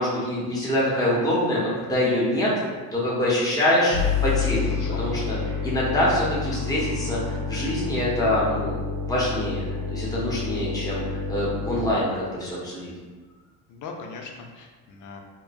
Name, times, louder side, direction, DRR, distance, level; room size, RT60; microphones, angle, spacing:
voice 1, 0.0-2.5 2.9-4.7 5.0-5.4 5.6-8.8 9.1-12.9, left 1 dB, 10° left, -7 dB, 0.9 m, -25 dB
sound 1, 3.9-11.9, left 5 dB, 55° right, 0.9 m, -29 dB
voice 2, 13.7-15.2, left 4 dB, 45° left, 2 dB, 0.6 m, -40 dB
3.0 x 2.2 x 2.4 m, 1.4 s
hypercardioid pair, 70°, 43 cm